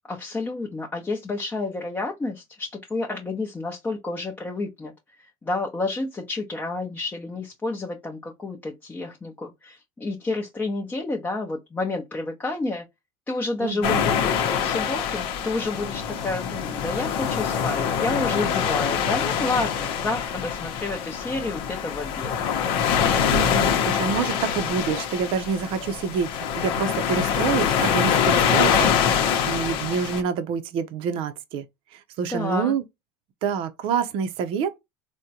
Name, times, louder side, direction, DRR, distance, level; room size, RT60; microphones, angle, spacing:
voice 1, 0.1-4.9 5.2-12.9 13.3-22.3 32.3-32.8, left 2 dB, 15° left, 0.7 m, -30 dB
voice 2, 13.6-14.1 23.3-31.6 31.9-32.8 33.4-34.8, right 6 dB, 55° right, 0.6 m, -27 dB
sound 1, 13.8-30.2, left 7 dB, 60° left, 0.8 m, -24 dB
3.6 x 2.2 x 2.7 m
supercardioid pair, 120°, 11 cm